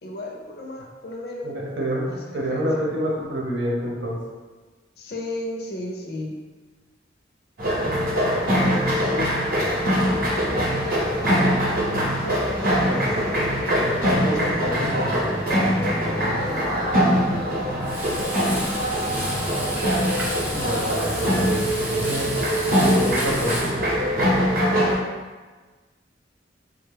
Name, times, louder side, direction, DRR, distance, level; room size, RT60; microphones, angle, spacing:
voice 1, 0.0-1.5 2.1-2.7 5.0-6.4 8.5-9.3 12.1-13.2 14.1-16.9 17.3-18.7 24.6-25.2, left 1 dB, 55° left, 0 dB, 0.5 m, -35 dB
voice 2, 1.4-2.0 2.3-4.2 9.1-9.2 12.8-13.1 13.6-15.3 20.5-22.3 22.8-23.8, equal, 85° right, -3 dB, 0.9 m, -27 dB
sound 1, 7.6-24.9, equal, 50° right, 0.8 m, -23 dB
Frying (food), 17.8-23.7, equal, 10° right, 0.5 m, -32 dB
3.4 x 2.2 x 3.4 m, 1.3 s
head